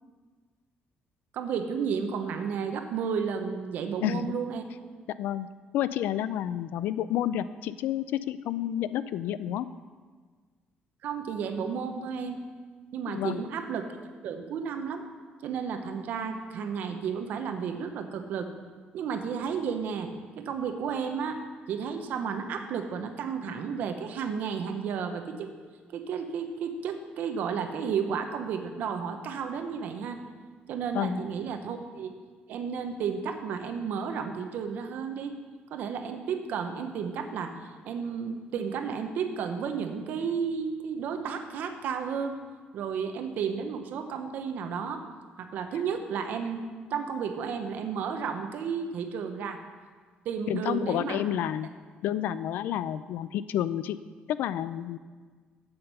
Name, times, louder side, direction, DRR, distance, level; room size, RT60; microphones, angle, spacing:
voice 1, 1.3-4.6 11.0-12.4 12.9-13.9 14.2-15.0 15.4-18.5 18.9-20.1 20.4-21.4 21.7-25.5 25.9-30.2 30.7-32.1 32.5-35.3 35.7-37.5 37.8-42.4 42.7-45.0 45.4-46.6 46.9-49.6 50.2-51.2, right 6 dB, 60° right, 6 dB, 0.8 m, -32 dB
voice 2, 4.0-4.4 5.2-5.5 5.7-9.7 13.1-13.4 30.9-31.2 50.5-51.7 52.0-54.0 54.3-55.0, left 11 dB, 70° left, 15 dB, 0.3 m, -30 dB
8.0 x 7.6 x 5.5 m, 1.5 s
cardioid pair, 180°, 3 cm